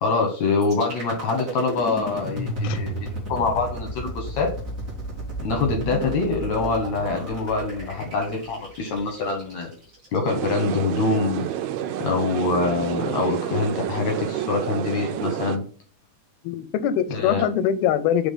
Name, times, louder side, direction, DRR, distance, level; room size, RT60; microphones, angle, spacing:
voice 1, 0.0-4.5 5.4-9.7 10.1-11.4 12.0-15.6 17.1-17.4, left 4 dB, 70° left, 1.7 m, -25 dB
sound 1, 0.6-10.6, right 1 dB, 35° right, 1.5 m, -33 dB
sound 2, 10.3-15.6, right 11 dB, 85° right, 2.5 m, -29 dB
voice 2, 16.4-18.3, left 9 dB, 85° left, 2.5 m, -23 dB
6.0 x 3.5 x 5.4 m
omnidirectional pair, 4.4 m